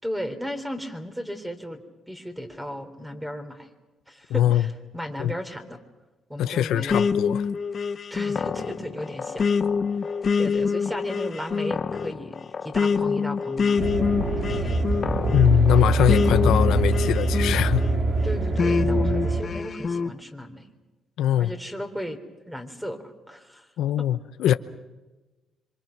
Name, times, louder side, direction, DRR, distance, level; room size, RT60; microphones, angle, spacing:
voice 1, 0.0-3.7 4.1-5.8 6.3-7.1 8.1-9.5 10.4-13.8 14.3-14.9 18.2-20.7 21.4-22.2 22.5-23.7, equal, 5° right, 3.7 m, -35 dB
voice 2, 4.3-4.6 5.2-5.3 6.4-7.4 15.3-17.8 21.2-21.5 23.8-24.5, left 12 dB, 80° left, 0.8 m, -22 dB
sound 1, 6.9-18.0 18.6-20.1, left 5 dB, 45° left, 0.9 m, -26 dB
sound 2, 13.8-19.4, right 2 dB, 65° right, 3.9 m, -23 dB
27.0 x 25.0 x 6.0 m
cardioid pair, 90°, 0 cm